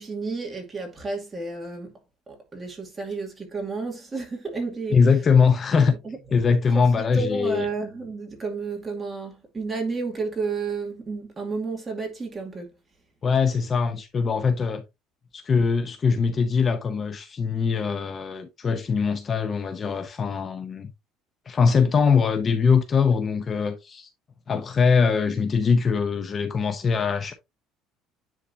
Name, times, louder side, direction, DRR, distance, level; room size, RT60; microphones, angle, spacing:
voice 1, 0.0-1.9 2.3-5.1 5.8-6.2 6.7-12.7, right 4 dB, 20° right, 2.4 m, -32 dB
voice 2, 4.9-5.9 6.3-7.7 13.2-14.8 15.3-20.9 21.5-24.1 24.5-27.3, left 5 dB, 30° left, 0.8 m, -22 dB
10.0 x 3.8 x 2.7 m
cardioid pair, 140°, 0 cm